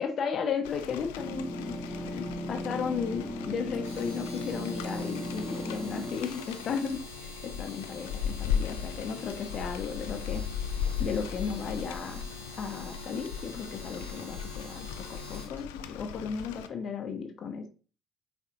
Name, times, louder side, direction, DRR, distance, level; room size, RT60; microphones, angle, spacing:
voice 1, 0.0-10.5 11.0-12.3 12.6-17.7, left 6 dB, 45° left, 6 dB, 0.8 m, -35 dB
Rain, 0.6-16.7, left 8 dB, 70° left, 0.3 m, -38 dB
sound 1, 1.2-6.2, equal, ahead, 0.6 m, -37 dB
Domestic sounds home sounds, 3.7-15.6, equal, 90° right, 1.2 m, -47 dB
5.6 x 3.6 x 2.5 m, 0.35 s
figure-of-eight pair, 55°, 0 cm